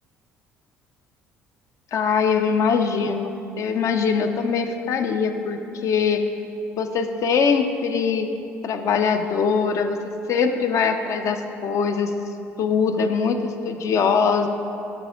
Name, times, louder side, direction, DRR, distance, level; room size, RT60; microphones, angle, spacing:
voice 1, 1.9-3.3 3.6-6.2 6.8-8.3 8.6-10.0 10.3-12.1 12.6-14.5, left 6 dB, 55° left, 6 dB, 0.5 m, -22 dB
8.9 x 3.5 x 3.7 m, 2.8 s
hypercardioid pair, 60°, 6 cm